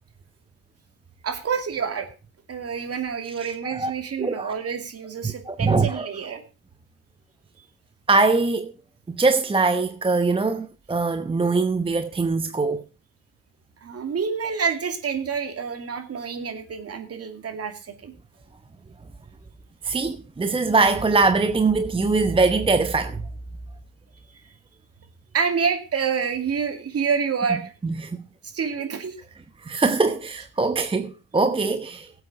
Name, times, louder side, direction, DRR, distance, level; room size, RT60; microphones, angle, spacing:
voice 1, 1.2-2.1 2.5-6.4 13.8-18.1 25.3-27.7 28.4-29.2, right 6 dB, 40° right, 2.5 m, -28 dB
voice 2, 4.2-4.5 5.5-6.1 8.1-8.7 9.2-12.8 19.8-23.2 27.8-28.2 29.7-32.1, right 3 dB, 15° right, 0.9 m, -22 dB
17.0 x 8.1 x 4.2 m
hypercardioid pair, 70°, 36 cm